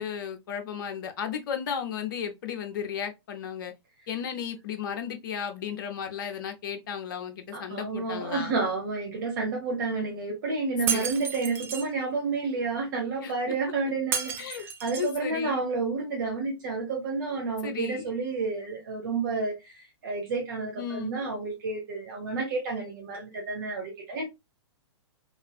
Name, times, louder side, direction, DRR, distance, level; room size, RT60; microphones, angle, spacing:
voice 1, 0.0-3.7 4.1-8.5 10.9-11.1 13.2-13.3 14.4-14.6 15.0-15.6 17.6-18.1 20.8-21.2, left 8 dB, 45° left, 0.6 m, -34 dB
voice 2, 7.5-19.5 20.0-24.2, right 4 dB, 45° right, 0.9 m, -30 dB
Shatter, 10.9-11.9 14.1-15.2, right 6 dB, 15° right, 0.3 m, -31 dB
3.2 x 2.4 x 2.2 m
figure-of-eight pair, 110°, 14 cm